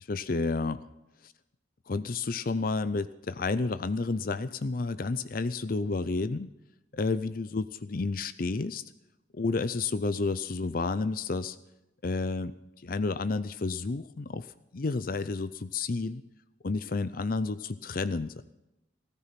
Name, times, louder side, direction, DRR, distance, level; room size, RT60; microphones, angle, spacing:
voice 1, 0.1-0.8 1.9-6.5 6.9-8.8 9.3-11.6 12.0-12.5 12.8-14.5 14.7-16.2 16.6-18.4, left 3 dB, 50° left, 14 dB, 0.6 m, -30 dB
15.5 x 14.0 x 5.8 m, 0.93 s
head